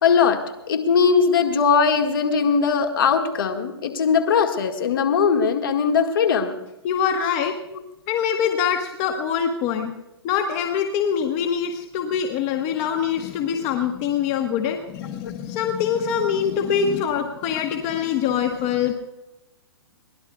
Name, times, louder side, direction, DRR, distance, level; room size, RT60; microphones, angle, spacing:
voice 1, 0.0-6.6, left 6 dB, 55° left, 4 dB, 1.9 m, -20 dB
voice 2, 6.8-7.6 8.1-9.9 10.2-18.9, left 8 dB, 30° left, 5 dB, 1.2 m, -24 dB
22.0 x 18.0 x 2.4 m, 0.96 s
figure-of-eight pair, 115°, 14 cm